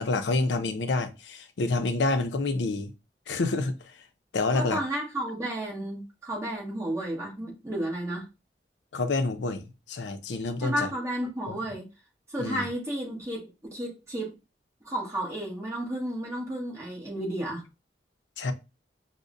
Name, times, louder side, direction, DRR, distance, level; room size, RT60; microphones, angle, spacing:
voice 1, 0.0-2.9 3.3-4.0 4.3-4.8 8.9-10.9 11.5-11.6 12.4-12.7 18.4-18.5, left 3 dB, 80° left, 0.5 m, -28 dB
voice 2, 4.5-8.3 10.6-11.9 12.3-14.3 14.8-17.6, right 1 dB, 15° right, 1.1 m, -32 dB
5.1 x 2.1 x 2.5 m
head